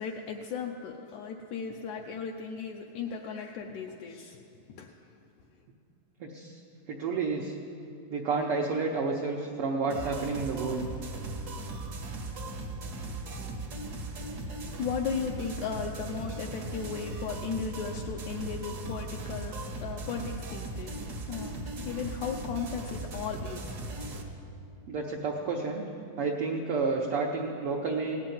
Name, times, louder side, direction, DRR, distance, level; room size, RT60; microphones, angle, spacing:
voice 1, 0.0-4.4 4.8-4.9 14.8-23.8, left 6 dB, 75° left, 2 dB, 1.9 m, -36 dB
voice 2, 6.2-6.6 6.9-7.5 8.1-10.8 24.9-25.8 26.2-28.2, right 4 dB, 75° right, -1 dB, 1.3 m, -30 dB
sound 1, 9.9-24.2, right 2 dB, 60° right, 1.0 m, -38 dB
17.5 x 7.5 x 9.4 m, 2.7 s
omnidirectional pair, 3.9 m